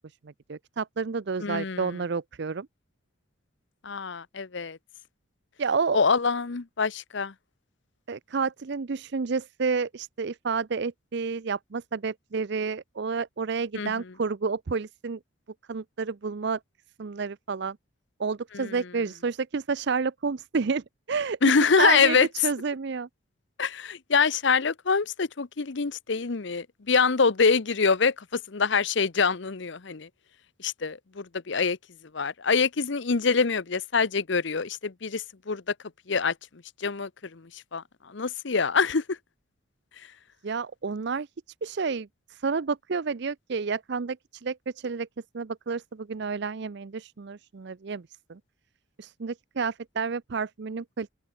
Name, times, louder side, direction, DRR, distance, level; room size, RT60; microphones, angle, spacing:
voice 1, 0.5-2.7 5.6-6.0 8.1-15.2 15.7-16.6 17.0-17.8 18.2-21.4 21.8-22.2 22.4-23.1 40.4-41.3 41.6-45.1 45.3-48.0 48.3-48.4 49.0-51.1, right 5 dB, 55° right, 0.5 m, -30 dB
voice 2, 1.4-1.9 3.8-4.8 5.9-7.3 13.7-13.9 18.5-18.7 21.4-22.3 23.6-30.1 30.6-31.8 32.1-35.6 36.1-36.3 36.8-39.2, left 5 dB, 60° left, 0.7 m, -25 dB
open air
head